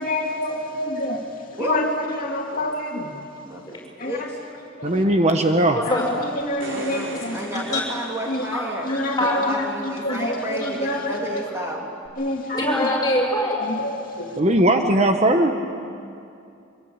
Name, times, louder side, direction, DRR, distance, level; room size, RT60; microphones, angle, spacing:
voice 1, 0.0-3.2 4.0-4.3 4.8-5.0 5.8-7.8 8.3-8.5 8.8-11.5 12.2-12.9 13.6-14.4, left 1 dB, 45° left, 0 dB, 2.6 m, -28 dB
voice 2, 3.4-4.2 6.7-8.9 9.2-11.9, equal, 15° right, -2 dB, 2.8 m, -31 dB
voice 3, 4.8-5.8 14.4-15.5, right 1 dB, 35° right, 5 dB, 1.2 m, -18 dB
sound 1, 6.4-9.0 12.0-12.1, right 2 dB, 70° right, 4.8 m, -37 dB
voice 4, 8.5-9.4 12.5-13.6, left 1 dB, 20° left, -1 dB, 6.5 m, -23 dB
24.5 x 23.0 x 8.8 m, 2.5 s
head